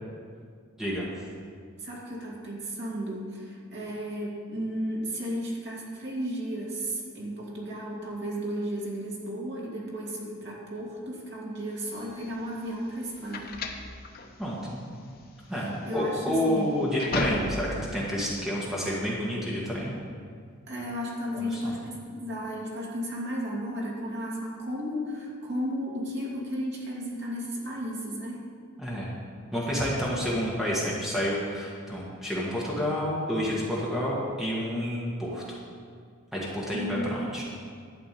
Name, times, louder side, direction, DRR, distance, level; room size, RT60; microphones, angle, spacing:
voice 1, 1.8-13.6 15.5-16.7 20.7-28.5 36.7-37.3, equal, 50° right, -4 dB, 2.4 m, -34 dB
sound 1, 11.9-17.9, left 2 dB, 45° left, 0.9 m, -35 dB
voice 2, 14.4-14.8 15.5-19.9 21.4-21.7 28.8-29.1 29.5-35.6 36.3-37.4, equal, ahead, -6 dB, 1.6 m, -29 dB
11.5 x 5.1 x 8.6 m, 2.1 s
head